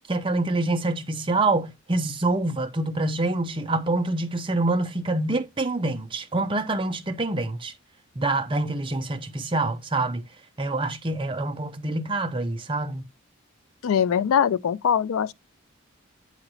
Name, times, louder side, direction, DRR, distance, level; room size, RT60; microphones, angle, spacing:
voice 1, 0.1-7.7 8.2-10.2 10.6-13.0, right 2 dB, 25° right, 0.6 m, -26 dB
voice 2, 13.8-15.3, left 8 dB, 80° left, 0.4 m, -22 dB
8.7 x 3.0 x 4.0 m
head